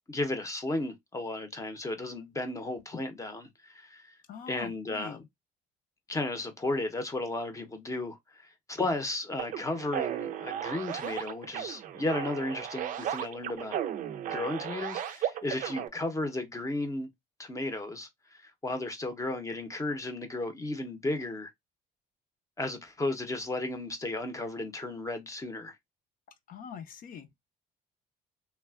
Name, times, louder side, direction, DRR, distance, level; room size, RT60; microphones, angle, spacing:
voice 1, 0.1-4.1 4.5-5.2 6.1-13.8 14.3-17.1 17.4-21.5 22.6-25.8, left 2 dB, 20° left, 0.7 m, -34 dB
voice 2, 4.3-5.3 26.5-27.3, left 7 dB, 55° left, 0.7 m, -43 dB
sound 1, 9.4-15.9, right 10 dB, 50° right, 0.4 m, -35 dB
3.3 x 2.3 x 2.3 m
cardioid pair, 110°, 17 cm